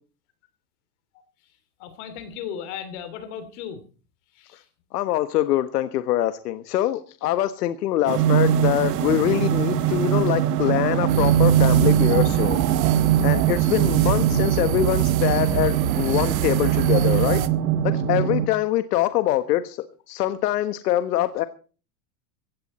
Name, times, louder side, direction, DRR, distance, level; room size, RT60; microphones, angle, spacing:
voice 1, 1.8-3.8 4.3-4.7, left 8 dB, 45° left, 2.9 m, -36 dB
voice 2, 4.9-12.6 13.2-17.5 17.8-21.5, left 13 dB, 80° left, 1.4 m, -24 dB
sound 1, 8.1-18.5, right 10 dB, 85° right, 1.9 m, -21 dB
sound 2, 11.1-17.5, right 12 dB, 60° right, 1.6 m, -26 dB
16.5 x 16.0 x 4.3 m
supercardioid pair, 170°, 46 cm